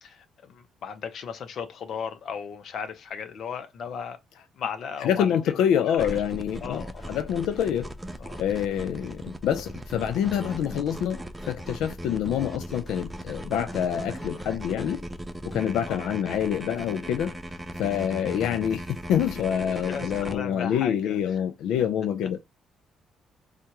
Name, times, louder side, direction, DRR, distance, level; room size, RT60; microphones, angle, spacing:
voice 1, 0.0-4.2 4.6-5.4 5.9-6.2 6.6-7.2 8.2-8.4 15.9-16.1 19.8-21.2, left 7 dB, 55° left, 0.8 m, -36 dB
voice 2, 5.0-7.9 8.4-15.0 15.5-17.4 17.8-22.4, left 9 dB, 85° left, 0.4 m, -26 dB
sound 1, 6.0-20.3, equal, 10° right, 0.4 m, -38 dB
4.5 x 2.4 x 2.8 m
cardioid pair, 140°, 0 cm